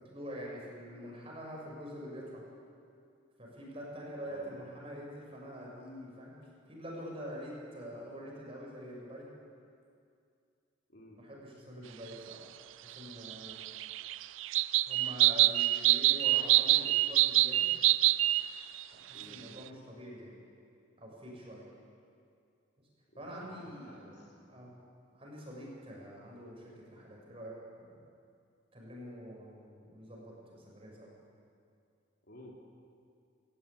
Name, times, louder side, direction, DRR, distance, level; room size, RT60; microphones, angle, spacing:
voice 1, 0.1-2.4 3.4-6.3 6.7-9.3 11.1-12.4 12.8-13.6 14.9-17.7 18.9-20.3 21.0-21.6 23.2-24.0 24.5-24.7 25.1-28.0 28.7-31.1, equal, 30° right, -3 dB, 6.4 m, -45 dB
voice 2, 10.9-11.2 19.1-19.5 23.1-24.6 32.2-32.5, equal, 55° left, -1 dB, 3.5 m, -54 dB
sound 1, 13.3-18.5 18.8-18.9 19.2-19.3, right 16 dB, 75° right, 0.5 m, -26 dB
20.0 x 17.5 x 9.9 m, 2.4 s
head